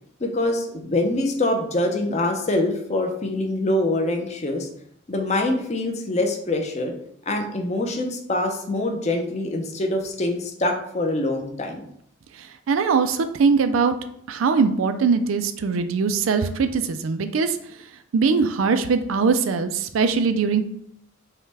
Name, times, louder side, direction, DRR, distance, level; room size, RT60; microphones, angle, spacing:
voice 1, 0.2-4.7 5.1-6.9 7.3-11.8, left 2 dB, 35° left, 3 dB, 0.5 m, -24 dB
voice 2, 12.7-13.9 14.3-17.6 18.1-20.6, right 5 dB, 90° right, 10 dB, 0.4 m, -21 dB
5.5 x 2.2 x 3.3 m, 0.71 s
head